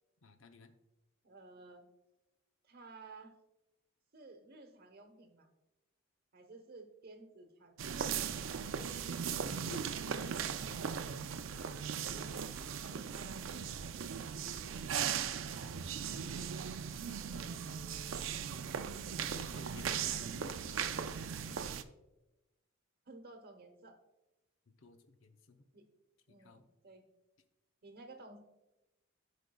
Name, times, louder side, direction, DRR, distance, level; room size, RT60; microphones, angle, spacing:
voice 1, 0.2-0.7 9.4-10.4 14.5-14.8 15.9-18.3 19.2-21.7 24.7-25.7 26.4-26.6, left 3 dB, 70° left, 8 dB, 0.7 m, -55 dB
voice 2, 1.2-1.8 2.6-3.4 4.1-5.5 6.3-8.0 11.6-12.2 12.8-13.4 23.1-24.0 25.7-25.8 26.3-27.1 27.8-28.4, right 3 dB, 50° right, 6 dB, 0.9 m, -54 dB
sound 1, 7.8-21.8, right 7 dB, 65° right, 0.4 m, -38 dB
14.5 x 5.2 x 2.3 m, 1.0 s
head